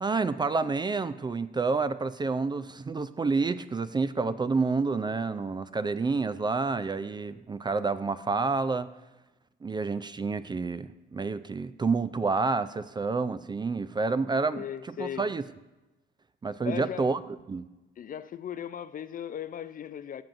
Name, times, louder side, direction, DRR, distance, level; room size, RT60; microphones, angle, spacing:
voice 1, 0.0-8.9 9.6-14.6 15.0-15.4 16.4-17.2 17.5-17.7, right 4 dB, 20° right, 13 dB, 0.3 m, -29 dB
voice 2, 14.5-15.3 16.6-17.1 18.0-20.2, left 9 dB, 45° left, 14 dB, 0.4 m, -37 dB
14.5 x 7.6 x 2.6 m, 1.1 s
cardioid pair, 90°, 20 cm